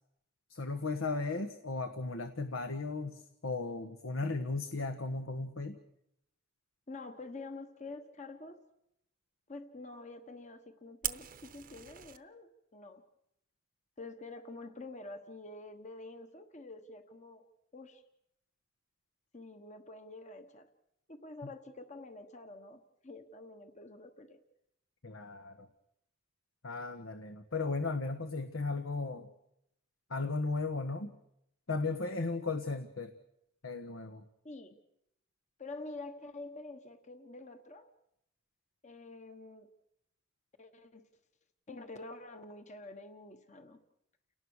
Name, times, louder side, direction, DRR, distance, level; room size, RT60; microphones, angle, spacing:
voice 1, 0.5-5.8 25.0-25.7 26.6-29.3 30.1-31.1 31.7-33.1 33.6-34.2, left 3 dB, 85° left, 8 dB, 1.4 m, -36 dB
voice 2, 6.9-8.6 9.5-13.0 14.0-17.5 17.7-18.0 19.3-20.7 21.1-24.4 34.4-34.8 35.6-37.9 38.8-39.7 40.6-41.0 41.7-43.8, left 2 dB, 35° left, 8 dB, 1.3 m, -47 dB
Fire, 11.0-12.2, right 12 dB, 45° right, 0.9 m, -40 dB
30.0 x 18.5 x 6.5 m, 0.79 s
head